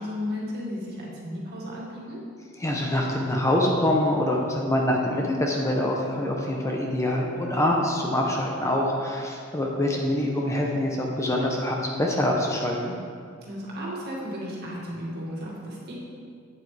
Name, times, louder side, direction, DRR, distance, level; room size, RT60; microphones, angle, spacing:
voice 1, 0.0-2.2 13.4-15.9, left 1 dB, 50° right, -4 dB, 2.0 m, -34 dB
voice 2, 2.6-12.9, left 1 dB, 15° left, -1 dB, 0.7 m, -25 dB
8.5 x 8.4 x 3.3 m, 2.2 s
head